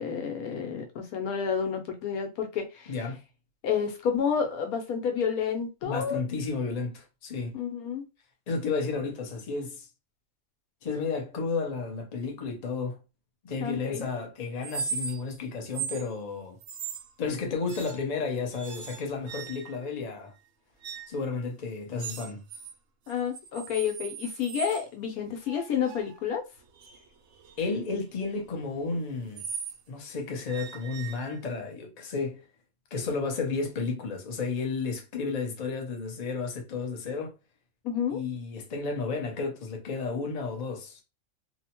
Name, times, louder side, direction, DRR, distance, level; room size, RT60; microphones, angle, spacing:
voice 1, 0.0-2.9 3.6-6.2 7.5-8.0 13.6-14.1 23.1-26.4 37.8-38.2, left 7 dB, 85° left, 1.2 m, -30 dB
voice 2, 2.9-3.2 5.8-7.6 8.5-9.9 10.8-13.0 13.4-16.6 17.2-20.3 21.1-22.4 27.6-29.4 29.9-32.4 32.9-37.4 38.1-41.0, left 4 dB, 40° left, 0.6 m, -32 dB
sound 1, 14.6-15.3 15.7-16.1 16.6-17.1 17.7-18.2 18.5-19.9 20.8-21.2 22.0-22.7 23.1-24.8 25.5-29.8 30.5-31.6, right 6 dB, 75° right, 1.0 m, -39 dB
2.9 x 2.1 x 2.9 m
omnidirectional pair, 1.5 m